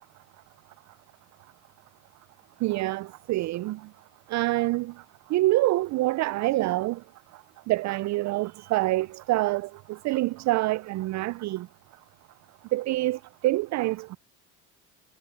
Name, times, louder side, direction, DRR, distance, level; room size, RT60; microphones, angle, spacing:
voice 1, 2.6-3.8 4.3-4.9 5.3-7.0 7.7-11.7 12.7-14.2, right 18 dB, 45° right, 0.4 m, -26 dB
supercardioid pair, 95°, 38 cm